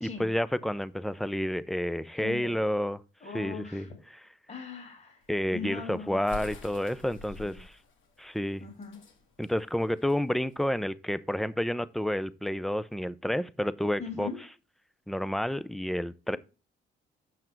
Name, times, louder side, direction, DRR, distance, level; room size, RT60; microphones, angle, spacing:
voice 1, 0.0-3.0 3.3-3.9 5.3-7.7 8.2-8.6 9.4-14.3 15.1-16.4, left 1 dB, ahead, 0.5 m, -30 dB
voice 2, 2.2-2.6 3.2-4.0 4.5-5.2 5.5-6.4 7.4-7.6 8.6-9.0 14.0-14.4, left 5 dB, 40° left, 3.0 m, -40 dB
sound 1, 5.2-10.8, left 2 dB, 75° left, 2.3 m, -47 dB
7.7 x 5.8 x 4.5 m
cardioid pair, 90°, 20 cm